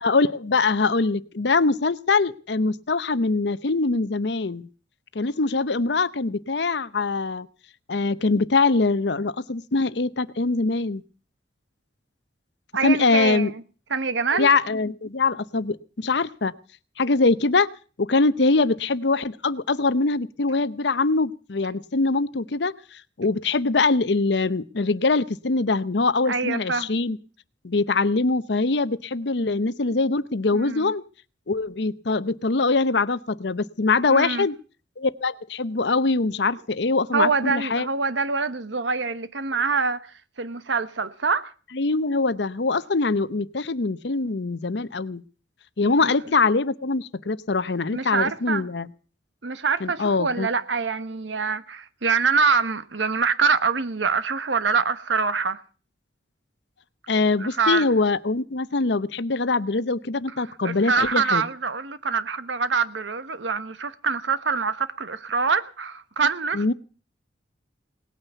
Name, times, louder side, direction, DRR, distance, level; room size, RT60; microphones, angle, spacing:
voice 1, 0.0-4.7 5.1-7.5 7.9-11.0 12.8-13.5 14.3-16.5 17.0-17.7 18.0-27.2 27.6-31.0 31.5-34.6 35.0-37.9 41.7-45.2 45.8-48.9 49.8-50.5 57.1-61.4 66.5-66.7, left 3 dB, 65° left, 0.8 m, -23 dB
voice 2, 12.7-13.6 13.9-14.5 26.3-26.9 30.5-30.9 34.0-34.5 37.1-41.5 45.8-46.1 47.9-48.7 49.4-55.6 57.4-57.9 60.4-66.7, right 5 dB, 80° right, 1.2 m, -25 dB
18.5 x 9.1 x 8.1 m
head